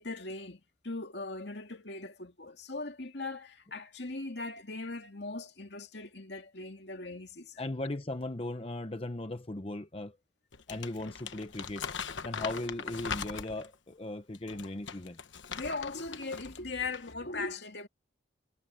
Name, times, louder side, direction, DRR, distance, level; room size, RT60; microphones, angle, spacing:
voice 1, 0.0-7.6 15.5-17.9, left 3 dB, 65° left, 2.4 m, -39 dB
voice 2, 7.6-10.2 10.7-11.9 12.2-15.2, left 2 dB, 30° left, 0.8 m, -37 dB
Crumpling crinkling, 10.5-13.7 14.3-16.6 16.9-17.1, left 6 dB, 85° left, 1.2 m, -40 dB
head